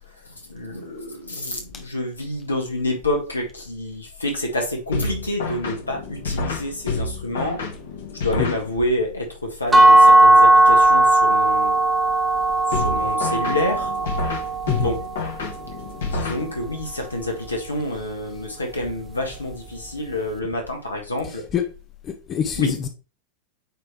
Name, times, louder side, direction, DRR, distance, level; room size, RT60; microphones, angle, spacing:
voice 1, 0.2-7.6 8.2-11.8 12.7-13.9 14.8-15.0 16.0-21.4 22.6-22.8, left 1 dB, 80° left, 1.8 m, -28 dB
sound 1, 4.9-9.1 12.7-16.9, left 3 dB, 60° left, 1.4 m, -29 dB
sound 2, 9.7-15.5, right 2 dB, 10° right, 1.0 m, -16 dB
voice 2, 22.0-22.9, left 8 dB, 30° left, 0.7 m, -24 dB
8.8 x 3.3 x 3.3 m
figure-of-eight pair, 90°, 0 cm